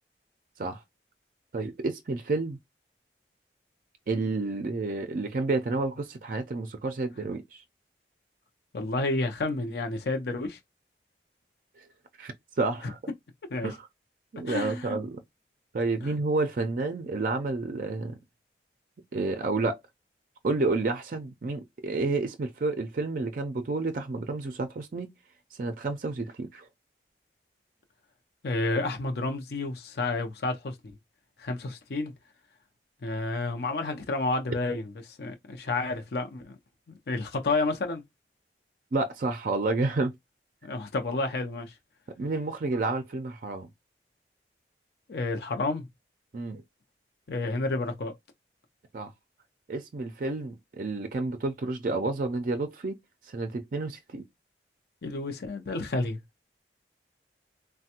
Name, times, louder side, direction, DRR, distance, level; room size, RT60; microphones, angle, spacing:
voice 1, 1.5-2.6 4.1-7.6 11.8-11.9 12.2-13.1 13.6-13.9 14.3-15.2 15.7-18.2 19.1-19.8 20.4-25.1 25.5-26.7 38.9-40.1 42.2-43.7 46.3-46.6 48.9-49.1 49.7-53.0 53.2-54.2, right 3 dB, 50° right, 0.4 m, -30 dB
voice 2, 8.7-10.6 13.5-13.7 14.5-15.0 28.4-30.8 31.4-32.1 33.0-36.6 37.1-38.0 40.6-41.7 45.1-45.9 47.3-48.1 55.0-56.2, left 2 dB, 65° left, 0.5 m, -30 dB
3.3 x 2.1 x 2.8 m
head